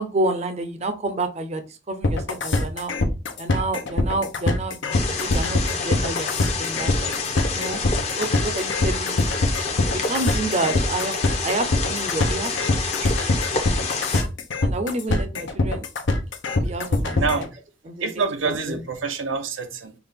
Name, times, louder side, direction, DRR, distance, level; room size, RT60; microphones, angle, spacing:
voice 1, 0.0-2.9 3.4-7.1 7.5-7.8 8.2-9.2 9.9-13.1 14.6-15.8 16.6-17.5 17.9-18.1 18.5-18.8, right 2 dB, 35° right, 0.6 m, -29 dB
sound 1, 2.0-17.5, left 2 dB, 70° left, 0.7 m, -23 dB
sound 2, 4.9-14.2, left 4 dB, 35° left, 0.8 m, -28 dB
voice 2, 17.2-17.5 18.0-19.9, right 4 dB, 85° right, 0.7 m, -26 dB
5.8 x 2.5 x 3.5 m
head